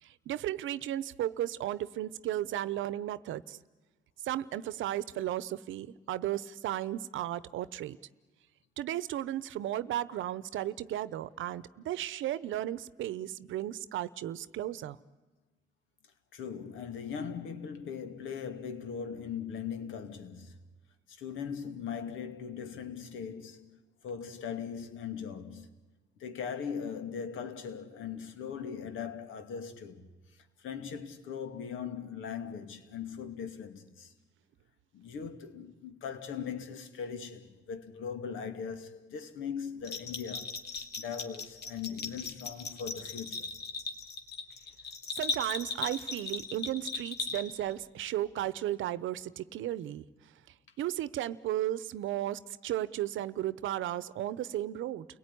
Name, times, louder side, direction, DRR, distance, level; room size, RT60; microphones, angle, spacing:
voice 1, 0.0-3.6 4.2-8.0 8.8-15.0 45.2-50.1 50.8-55.1, right 13 dB, 80° right, 0.9 m, -34 dB
voice 2, 16.3-20.6 21.1-23.8 24.0-25.7 26.2-34.1 34.9-40.6 41.0-43.5, left 7 dB, 80° left, 2.5 m, -40 dB
Bell, 39.8-47.7, left 4 dB, 55° left, 2.6 m, -38 dB
29.5 x 18.0 x 10.0 m
cardioid pair, 90°, 20 cm